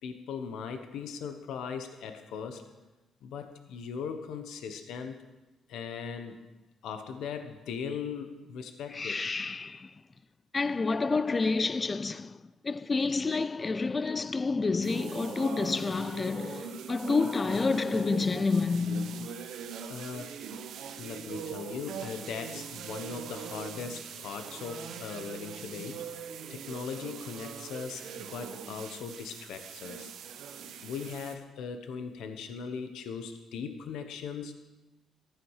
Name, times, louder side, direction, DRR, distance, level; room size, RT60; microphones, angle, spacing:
voice 1, 0.0-2.7 3.2-5.2 5.7-6.4 6.8-9.2 19.9-20.4 21.0-26.0 26.5-30.1 30.8-34.6, left 6 dB, 80° left, 1.2 m, -39 dB
voice 2, 8.9-9.9 10.5-12.4 12.6-19.3, left 4 dB, 30° left, 0.5 m, -29 dB
sound 1, 14.8-31.4, right 7 dB, 80° right, 1.1 m, -42 dB
14.5 x 12.5 x 4.9 m
cardioid pair, 90°, 0 cm